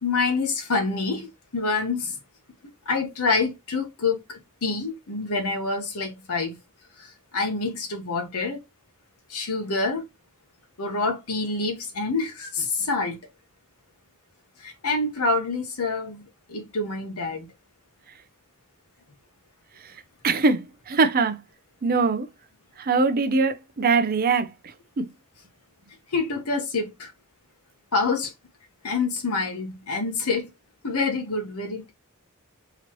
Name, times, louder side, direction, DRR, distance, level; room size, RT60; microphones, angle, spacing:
voice 1, 0.0-2.2 2.9-6.6 7.0-8.6 9.3-10.1 10.8-13.2 14.6-16.2 16.5-17.5 26.1-27.1 27.9-28.3 28.8-30.5 30.8-31.9, left 3 dB, 75° left, 1.1 m, -27 dB
voice 2, 20.2-21.4 21.8-22.3 22.8-24.5 25.0-25.1, right 4 dB, 40° right, 0.5 m, -22 dB
3.9 x 3.0 x 3.0 m
head